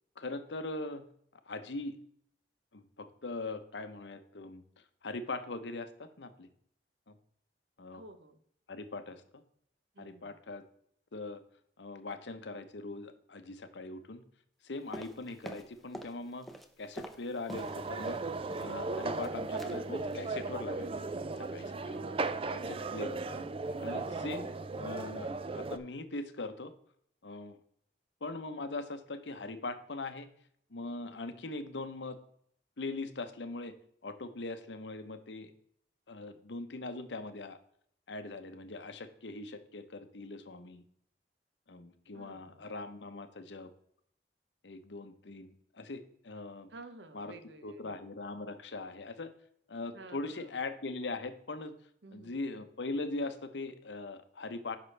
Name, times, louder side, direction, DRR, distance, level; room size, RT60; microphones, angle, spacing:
voice 1, 0.2-1.0 1.5-2.0 2.7-4.6 5.0-6.5 7.1-7.2 7.8-8.0 8.7-9.4 10.0-10.6 11.1-11.4 11.8-14.2 14.6-16.5 16.8-18.2 18.6-21.1 21.4-22.0 22.5-23.5 23.8-24.5 24.8-26.7 27.2-27.6 28.2-30.3 30.7-32.2 32.8-33.7 34.0-35.5 36.1-37.6 38.1-40.8 41.7-43.7 44.6-46.7 47.1-47.3 47.6-49.3 49.7-51.7 52.1-54.8, left 2 dB, 80° left, 10 dB, 0.8 m, -41 dB
voice 2, 7.9-8.4 9.9-10.3 21.9-23.0 23.9-24.3 42.1-42.7 46.7-47.9 49.9-50.5 52.0-52.4, right 2 dB, 75° right, 10 dB, 0.9 m, -53 dB
sound 1, 14.9-16.2 16.4-18.2 18.5-19.3 19.6-19.8 20.1-20.3 20.6-20.9 21.1-21.2, equal, ahead, 0.7 m, -46 dB
sound 2, 17.5-25.8, right 3 dB, 30° right, 0.4 m, -36 dB
9.3 x 6.0 x 3.3 m, 0.68 s
head